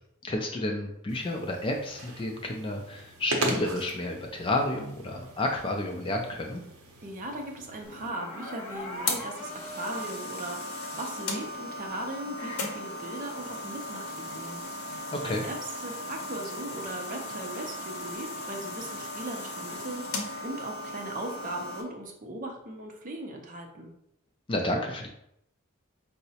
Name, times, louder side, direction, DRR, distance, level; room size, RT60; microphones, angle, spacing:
voice 1, 0.2-6.6 15.2-15.4 24.5-25.1, left 1 dB, 25° left, 2 dB, 0.3 m, -31 dB
sound 1, 1.1-8.1, right 1 dB, 80° right, 0.6 m, -38 dB
voice 2, 7.0-14.6 15.2-23.9, right 1 dB, 40° right, 2 dB, 0.5 m, -38 dB
sound 2, 7.8-21.8, left 1 dB, 85° left, 0.6 m, -37 dB
4.6 x 2.0 x 2.7 m, 0.78 s
head